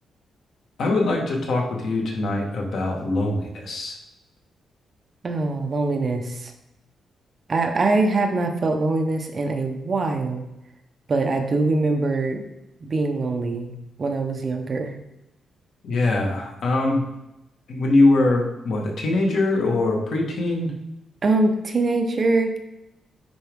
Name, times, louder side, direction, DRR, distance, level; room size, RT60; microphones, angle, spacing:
voice 1, 0.8-4.0 15.8-17.0 17.7-20.7, left 2 dB, 60° left, 1 dB, 1.6 m, -22 dB
voice 2, 5.2-6.5 7.5-10.4 11.1-12.4 12.8-15.0 21.2-22.6, right 3 dB, 30° right, 5 dB, 0.8 m, -23 dB
10.0 x 4.6 x 3.6 m, 0.88 s
wide cardioid pair, 160°, 0 cm